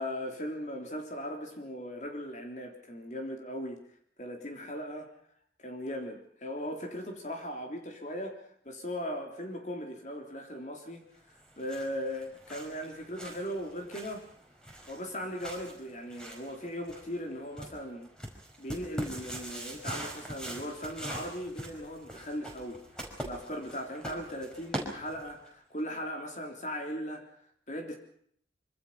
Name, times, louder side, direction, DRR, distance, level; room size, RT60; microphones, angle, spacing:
voice 1, 0.0-3.8 4.2-5.1 5.6-14.3 14.9-18.1 18.6-22.8 23.1-27.3 27.7-28.0, equal, 40° left, 2 dB, 3.6 m, -38 dB
sound 1, 11.3-25.5, right 1 dB, 5° left, 5.2 m, -43 dB
25.5 x 25.5 x 5.7 m, 0.64 s
head